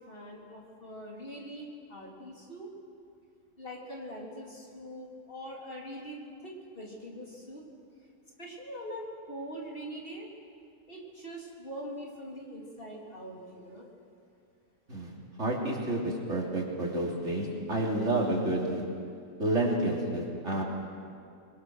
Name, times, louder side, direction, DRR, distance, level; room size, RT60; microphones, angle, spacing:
voice 1, 0.1-2.7 3.6-6.2 6.4-7.6 8.4-10.3 10.9-13.9, equal, 40° left, -3 dB, 3.7 m, -43 dB
voice 2, 15.4-18.8 19.4-20.6, right 1 dB, 55° right, -2 dB, 3.6 m, -29 dB
26.0 x 22.5 x 6.4 m, 2.4 s
omnidirectional pair, 1.5 m